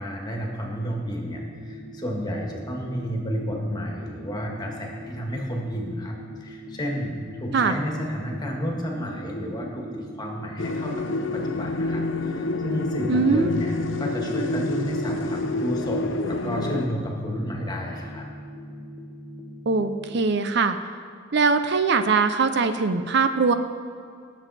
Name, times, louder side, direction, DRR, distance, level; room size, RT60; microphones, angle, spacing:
voice 1, 0.0-18.3, equal, 20° left, 0 dB, 1.8 m, -31 dB
sound 1, 1.2-20.2, equal, 40° left, 1.2 m, -42 dB
sound 2, 10.6-16.9, left 2 dB, 85° left, 0.7 m, -28 dB
voice 2, 13.1-13.5 19.7-20.8 21.3-23.5, right 4 dB, 65° right, 10 dB, 0.6 m, -21 dB
18.5 x 7.1 x 4.2 m, 2.2 s
head